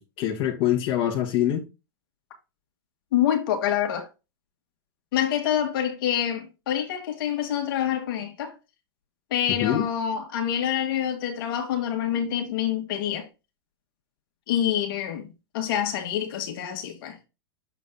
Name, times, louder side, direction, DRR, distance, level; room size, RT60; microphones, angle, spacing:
voice 1, 0.0-1.6 9.5-9.9, left 11 dB, 45° left, 1.7 m, -25 dB
voice 2, 3.1-4.1 5.1-8.5 9.3-13.3 14.5-15.3 15.5-17.2, left 10 dB, 65° left, 1.8 m, -26 dB
7.2 x 4.1 x 3.9 m
hypercardioid pair, 115°, 13 cm